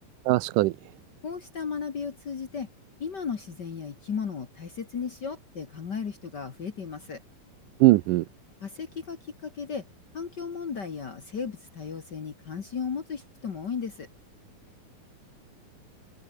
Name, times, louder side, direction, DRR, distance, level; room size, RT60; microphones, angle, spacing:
voice 1, 0.3-0.7 7.8-8.2, right 19 dB, 80° right, 1.9 m, -20 dB
voice 2, 1.2-2.7 3.0-7.2 8.6-9.8 10.1-14.1, left 6 dB, 50° left, 1.2 m, -35 dB
omnidirectional pair, 4.3 m